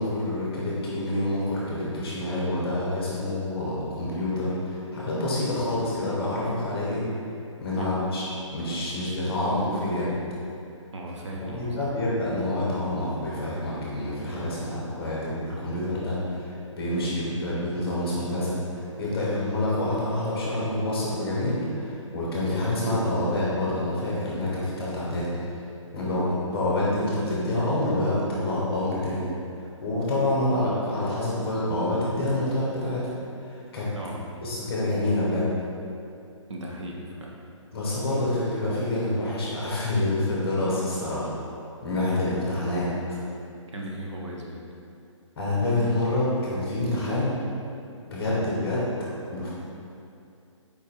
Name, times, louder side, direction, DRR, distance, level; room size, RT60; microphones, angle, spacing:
voice 1, 0.0-7.0 7.6-10.2 11.5-18.6 19.0-25.3 25.9-29.3 29.8-33.1 33.4-33.9 34.4-35.5 37.7-41.3 41.8-42.9 45.4-47.4 48.0-48.9 49.3-49.5, left 1 dB, 15° left, -7 dB, 1.0 m, -27 dB
voice 2, 10.9-11.8 33.9-34.3 36.5-37.3 43.7-44.6, right 1 dB, 65° right, -2 dB, 1.2 m, -36 dB
5.0 x 4.5 x 4.3 m, 2.6 s
hypercardioid pair, 170°, 16 cm